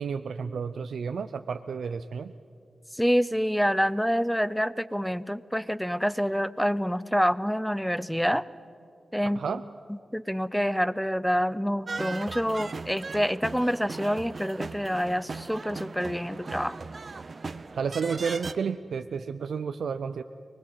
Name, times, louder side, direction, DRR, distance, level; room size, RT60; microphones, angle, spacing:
voice 1, 0.0-2.3 9.4-9.6 17.7-20.2, right 6 dB, 80° right, 10 dB, 0.5 m, -31 dB
voice 2, 2.9-8.4 9.1-9.4 9.9-16.8, equal, ahead, 17 dB, 0.7 m, -27 dB
sound 1, 11.9-18.5, right 4 dB, 50° right, 0.8 m, -38 dB
24.0 x 20.0 x 7.7 m, 2.4 s
cardioid pair, 60°, 0 cm